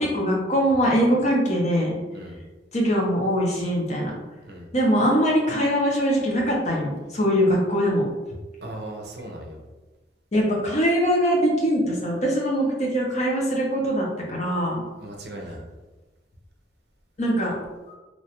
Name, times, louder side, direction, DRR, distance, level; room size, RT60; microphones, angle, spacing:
voice 1, 0.0-1.9 2.7-4.1 4.7-8.1 10.3-14.8 17.2-17.6 17.9-18.0, equal, 40° left, -2 dB, 0.6 m, -22 dB
voice 2, 8.6-9.6 15.0-15.6, right 1 dB, 60° right, 1 dB, 0.5 m, -37 dB
2.9 x 2.3 x 2.8 m, 1.2 s
head